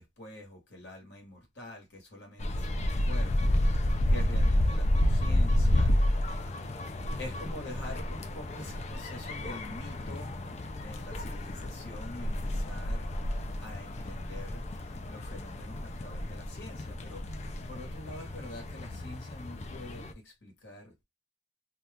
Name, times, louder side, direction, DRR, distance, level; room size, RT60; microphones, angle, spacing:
voice 1, 0.0-5.9 7.2-10.4 10.8-13.1 13.6-14.6 15.1-20.9, left 1 dB, 75° left, 1.3 m, -46 dB
sound 1, 2.4-20.1, left 1 dB, 40° left, 0.4 m, -30 dB
2.8 x 2.3 x 3.3 m
head